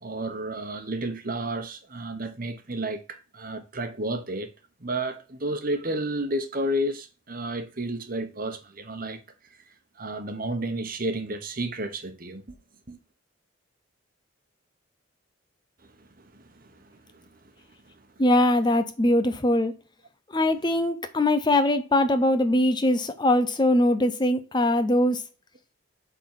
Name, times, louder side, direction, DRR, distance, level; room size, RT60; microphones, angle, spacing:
voice 1, 0.0-4.5 4.8-9.2 10.0-12.4 12.9-13.0 16.0-17.3, right 1 dB, 45° right, 1.2 m, -32 dB
voice 2, 18.2-19.7 20.3-25.2, left 1 dB, 20° left, 0.6 m, -22 dB
7.4 x 4.1 x 5.7 m
head